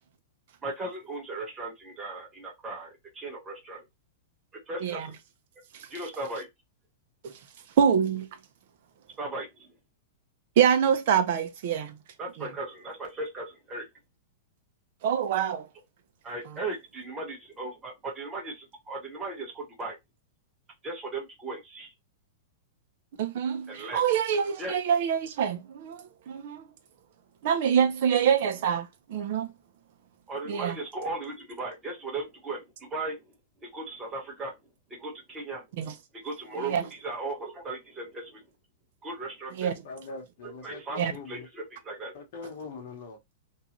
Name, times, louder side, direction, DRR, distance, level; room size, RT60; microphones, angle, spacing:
voice 1, 0.6-3.8 4.7-5.2 5.9-6.4 9.2-9.7 12.2-13.9 16.2-20.0 20.8-21.9 23.7-24.0 24.6-24.8 30.3-33.2 33.6-34.6 34.9-35.6 36.1-38.4 39.0-39.8 40.4-42.1, right 2 dB, 15° right, 1.1 m, -37 dB
voice 2, 7.8-8.3 10.6-12.0 12.4-12.5 15.0-15.6 23.2-26.6 27.4-29.5 30.5-30.8 35.8-35.9 36.6-36.8 39.6-39.7 41.0-41.1, right 8 dB, 50° right, 0.5 m, -25 dB
voice 3, 39.8-41.5 42.1-43.2, left 4 dB, 50° left, 1.0 m, -42 dB
2.6 x 2.3 x 2.9 m
supercardioid pair, 170°, 0 cm